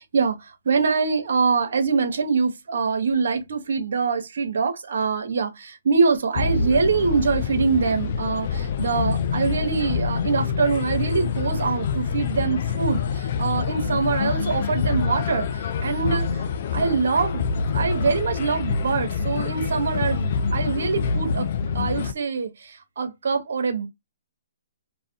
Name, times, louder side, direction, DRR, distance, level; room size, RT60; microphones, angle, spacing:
voice 1, 0.0-17.4 17.7-21.5 21.7-23.9, right 5 dB, 70° right, 0.7 m, -24 dB
sound 1, 6.3-22.1, left 5 dB, 50° left, 0.3 m, -26 dB
2.4 x 2.1 x 2.5 m
hypercardioid pair, 145°, 0 cm